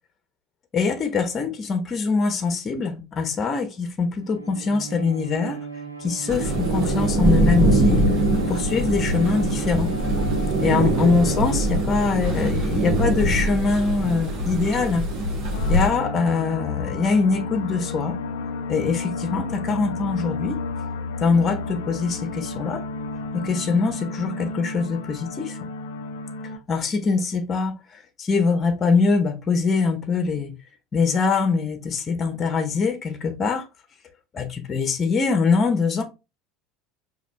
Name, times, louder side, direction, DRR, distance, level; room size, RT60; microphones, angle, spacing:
voice 1, 0.7-5.7 6.0-8.0 8.5-9.9 10.6-15.1 15.7-18.1 18.7-20.6 21.2-22.8 23.3-25.6 26.7-27.8 28.2-30.5 30.9-33.7 34.3-36.0, left 4 dB, 30° left, 0.9 m, -23 dB
Bowed string instrument, 4.2-12.6, right 4 dB, 85° right, 0.6 m, -34 dB
sound 1, 6.3-15.9, right 1 dB, 55° right, 1.9 m, -22 dB
sound 2, 15.5-26.6, left 3 dB, 65° left, 0.5 m, -32 dB
5.2 x 3.0 x 3.2 m
figure-of-eight pair, 70°, 0 cm